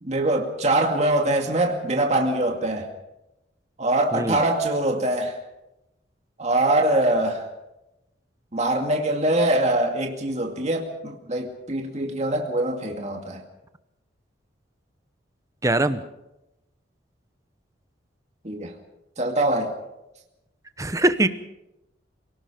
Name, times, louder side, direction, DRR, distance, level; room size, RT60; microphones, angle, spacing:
voice 1, 0.0-2.9 3.8-5.4 6.4-7.5 8.5-13.4 18.4-18.7 19.2-19.8, right 1 dB, 35° right, 2 dB, 2.2 m, -23 dB
voice 2, 15.6-16.0 20.8-21.3, right 2 dB, 20° right, 11 dB, 1.0 m, -21 dB
28.0 x 18.5 x 5.2 m, 0.91 s
head